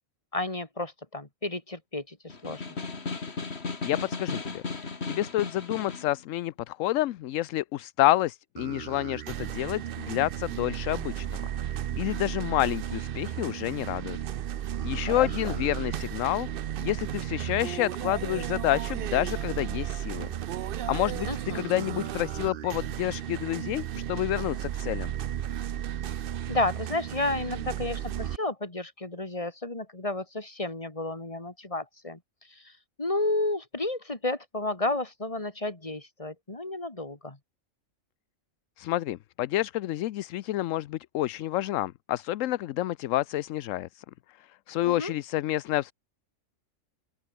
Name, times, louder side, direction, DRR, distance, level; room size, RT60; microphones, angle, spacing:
voice 1, 0.3-2.6 15.1-15.6 21.3-21.6 26.1-26.2 26.5-32.2 32.5-32.7 33.0-37.4 44.8-45.1, left 2 dB, 25° left, 2.8 m, -32 dB
Snare drum, 2.3-6.1, left 4 dB, 50° left, 2.4 m, -35 dB
voice 2, 3.8-4.6 5.1-14.2 14.8-16.5 16.8-20.3 20.9-21.3 21.5-25.1 38.8-44.0 44.7-45.9, left 15 dB, 75° left, 0.9 m, -29 dB
sound 1, 8.6-28.4, right 10 dB, 60° right, 0.6 m, -34 dB
open air
omnidirectional pair, 1.4 m